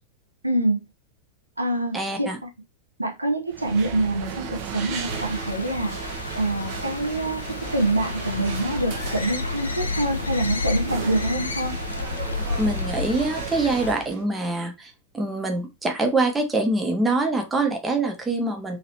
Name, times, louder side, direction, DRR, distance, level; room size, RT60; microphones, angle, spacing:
voice 1, 0.4-0.8 1.6-2.3 3.0-4.5 4.7-6.0 6.4-7.4 7.7-11.8, right 1 dB, 85° right, 0.6 m, -25 dB
voice 2, 1.9-2.4 12.6-18.8, right 2 dB, 15° right, 0.8 m, -24 dB
sound 1, 3.5-14.2, right 6 dB, 45° right, 0.6 m, -35 dB
sound 2, 5.1-13.9, left 4 dB, 75° left, 0.4 m, -31 dB
2.9 x 2.9 x 2.7 m
figure-of-eight pair, 90°, 0 cm